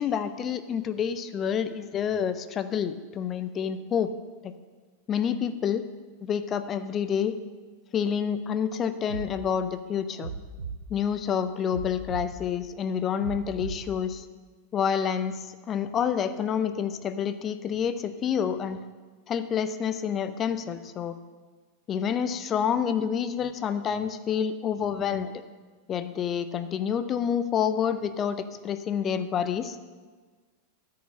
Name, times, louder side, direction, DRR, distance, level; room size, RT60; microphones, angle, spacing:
voice 1, 0.0-4.1 4.4-4.5 5.1-5.8 6.2-7.4 7.9-10.3 10.9-14.2 14.7-18.8 19.3-21.2 21.9-25.4 25.9-29.8, left 8 dB, 25° left, 11 dB, 0.6 m, -28 dB
sound 1, 9.1-9.3 10.2-10.8 11.7-12.3 13.2-13.8, right 6 dB, 75° right, 0.7 m, -36 dB
10.0 x 5.8 x 7.5 m, 1.4 s
figure-of-eight pair, 90°, 0 cm